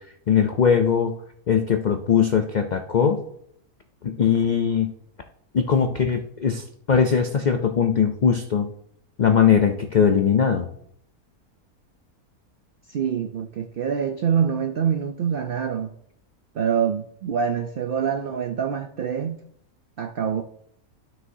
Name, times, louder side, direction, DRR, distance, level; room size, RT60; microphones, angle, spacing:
voice 1, 0.3-1.1 1.5-3.2 4.0-4.9 5.5-8.7 9.2-10.7, left 7 dB, 80° left, 5 dB, 0.4 m, -20 dB
voice 2, 12.9-15.9 16.6-19.4 20.0-20.4, right 7 dB, 85° right, 6 dB, 0.4 m, -25 dB
12.5 x 6.0 x 2.7 m, 0.69 s
omnidirectional pair, 1.6 m